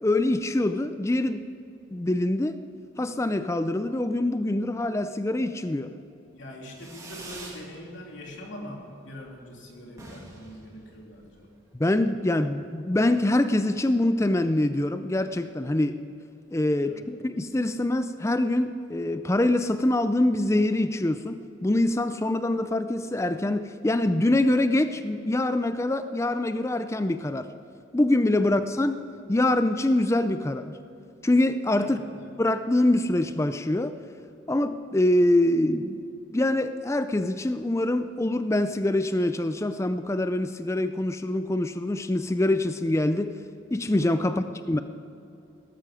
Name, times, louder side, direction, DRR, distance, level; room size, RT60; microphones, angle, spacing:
voice 1, 0.0-1.4 1.9-2.6 3.0-6.0 11.7-16.0 16.5-27.5 27.9-29.0 29.3-30.7 31.2-32.0 32.4-34.0 34.5-36.0 36.3-43.3 43.7-44.8, left 1 dB, 15° left, 10 dB, 0.4 m, -24 dB
voice 2, 6.3-11.5 16.8-17.1 28.4-28.6 31.8-32.3 44.2-44.5, equal, 70° left, -1 dB, 3.0 m, -43 dB
Fireworks, 6.7-7.6 8.0-8.6 8.8-8.9 9.2-9.3 9.5-9.6 9.9-11.5, right 2 dB, 15° right, 2.5 m, -45 dB
18.0 x 13.5 x 5.0 m, 2.8 s
head